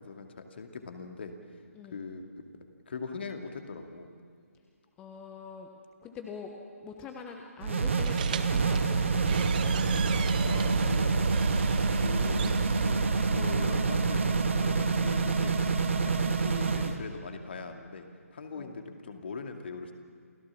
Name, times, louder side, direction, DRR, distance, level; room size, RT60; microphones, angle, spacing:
voice 1, 0.0-1.3 1.9-2.3 2.9-4.1 10.5-11.1 11.9-18.1 18.3-19.9, left 4 dB, 45° left, 5 dB, 2.3 m, -41 dB
voice 2, 5.0-5.7 6.0-6.5 6.8-9.7 18.5-18.8, left 6 dB, 10° left, 3 dB, 1.1 m, -44 dB
sound 1, 7.6-17.0, right 4 dB, 55° right, 1.8 m, -27 dB
sound 2, 7.9-12.9, right 8 dB, 35° right, 0.9 m, -38 dB
28.5 x 16.5 x 7.5 m, 2.1 s
figure-of-eight pair, 145°, 8 cm